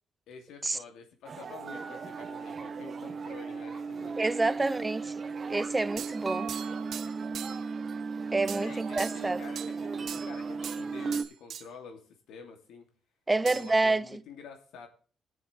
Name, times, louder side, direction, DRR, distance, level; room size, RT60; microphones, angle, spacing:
voice 1, 0.3-4.7 8.5-12.9 13.4-14.9, left 5 dB, 80° left, 2.6 m, -48 dB
sound 1, 1.2-11.2, right 5 dB, 40° right, 0.9 m, -36 dB
voice 2, 4.2-5.1 5.5-6.5 8.3-9.4 13.3-14.2, right 2 dB, 20° right, 0.5 m, -28 dB
sound 2, 6.0-7.7 8.5-8.7 9.0-9.8 10.1-10.8 11.1-11.7 13.5-14.0, right 9 dB, 65° right, 0.6 m, -41 dB
19.0 x 7.0 x 3.3 m
cardioid pair, 90°, 0 cm